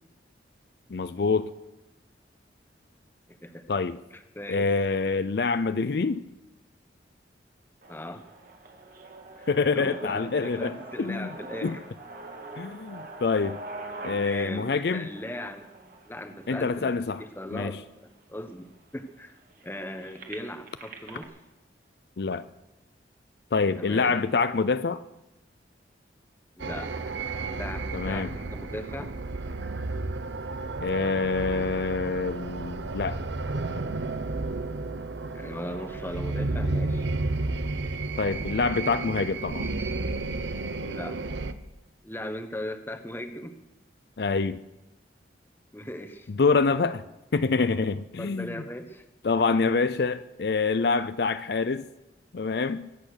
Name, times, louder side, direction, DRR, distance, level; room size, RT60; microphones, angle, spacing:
voice 1, 0.9-1.5 3.7-4.0 4.5-6.2 9.5-11.3 11.6-11.8 12.6-13.6 14.0-15.1 16.5-17.2 17.5-17.8 22.2-22.5 23.5-25.0 27.9-28.3 30.8-33.2 38.2-39.7 44.2-44.6 46.3-47.0 47.3-48.6 49.2-51.9 52.3-52.9, left 4 dB, 60° left, 0.5 m, -26 dB
voice 2, 4.1-4.7 7.9-8.2 9.4-9.5 9.7-11.8 14.0-15.7 16.0-19.3 19.6-21.3 23.7-24.1 26.6-26.9 27.5-29.1 35.3-37.1 40.8-41.2 42.0-43.5 45.7-46.3 48.2-49.0, left 1 dB, 10° left, 1.1 m, -38 dB
sound 1, 7.8-17.8 18.4-18.5 18.8-21.2, right 2 dB, 50° right, 2.1 m, -44 dB
sound 2, 26.6-41.5, right 3 dB, 80° right, 0.8 m, -32 dB
23.0 x 8.6 x 6.6 m
head